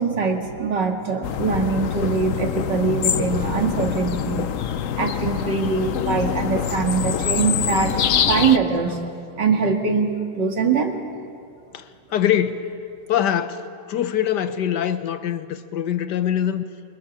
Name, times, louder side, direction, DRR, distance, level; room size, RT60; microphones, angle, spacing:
voice 1, 0.0-4.4 5.0-9.0 9.3-11.0, right 5 dB, 85° right, 3 dB, 2.8 m, -22 dB
sound 1, 1.2-8.6, left 9 dB, 55° left, 1.0 m, -25 dB
voice 2, 12.1-12.7 13.1-13.6 13.9-16.6, left 10 dB, 75° left, 10 dB, 1.7 m, -23 dB
26.0 x 25.5 x 7.3 m, 2.4 s
omnidirectional pair, 1.9 m